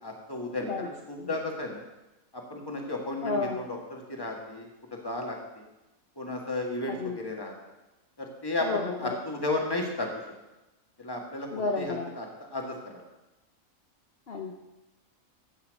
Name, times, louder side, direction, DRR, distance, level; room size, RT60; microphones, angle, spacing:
voice 1, 0.0-1.8 2.3-5.7 6.2-7.5 8.2-10.1 11.0-13.1, left 2 dB, 15° left, 0 dB, 1.8 m, -34 dB
voice 2, 3.2-3.6 6.9-7.2 8.6-9.2 11.5-12.1 14.3-14.5, left 4 dB, 50° left, 1 dB, 1.1 m, -31 dB
15.0 x 5.7 x 6.5 m, 1.0 s
omnidirectional pair, 1.4 m